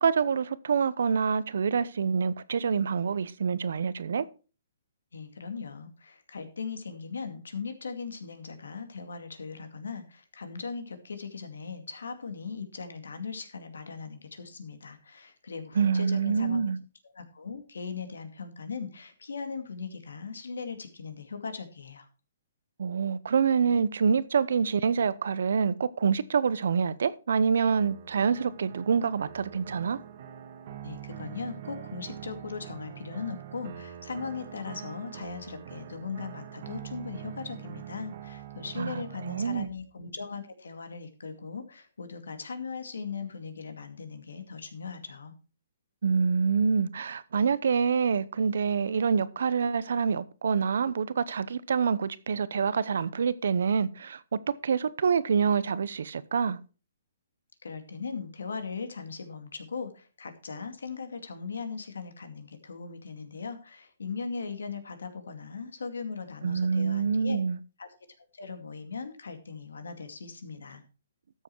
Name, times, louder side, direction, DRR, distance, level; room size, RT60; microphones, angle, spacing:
voice 1, 0.0-4.2 15.8-16.8 22.8-30.0 38.8-39.7 46.0-56.6 66.4-67.6, right 6 dB, 70° right, 0.8 m, -26 dB
voice 2, 5.1-16.6 17.2-22.1 30.8-45.3 57.6-67.4 67.8-67.9 68.3-70.8, left 5 dB, 90° left, 2.3 m, -39 dB
sound 1, 27.6-39.7, right 10 dB, 50° right, 1.7 m, -44 dB
13.0 x 7.0 x 4.6 m
hypercardioid pair, 150°, 0 cm